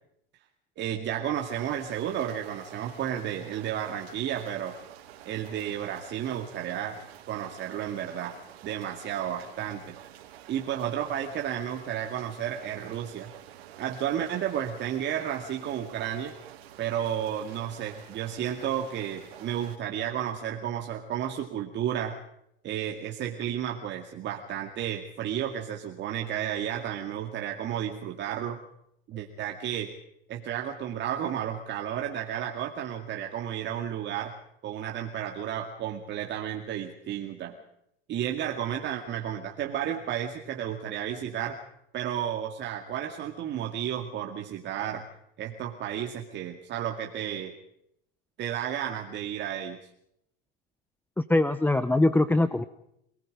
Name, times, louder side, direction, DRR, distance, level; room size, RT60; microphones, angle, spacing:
voice 1, 0.8-4.8 5.3-7.0 7.3-8.4 8.6-10.1 10.5-13.3 13.8-16.3 16.8-22.2 22.6-28.6 29.1-29.9 30.3-34.3 34.6-37.6 38.1-41.6 41.9-45.0 45.4-47.5 48.4-49.8, right 10 dB, 35° right, 3 dB, 2.3 m, -32 dB
sound 1, 1.3-19.8, right 12 dB, 85° right, 3.7 m, -49 dB
voice 2, 51.2-52.6, left 2 dB, 5° left, 13 dB, 0.8 m, -22 dB
27.0 x 19.5 x 5.1 m, 0.77 s
supercardioid pair, 130°, 30 cm